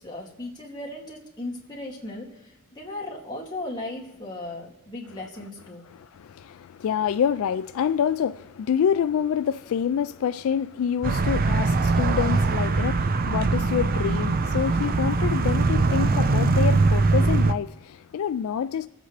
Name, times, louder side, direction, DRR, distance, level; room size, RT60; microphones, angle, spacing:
voice 1, 0.0-5.9, left 2 dB, 20° left, 2.4 m, -37 dB
voice 2, 5.9-18.9, left 8 dB, 65° left, 0.3 m, -27 dB
sound 1, 11.0-17.5, right 3 dB, 40° right, 0.5 m, -22 dB
24.0 x 8.1 x 3.3 m
head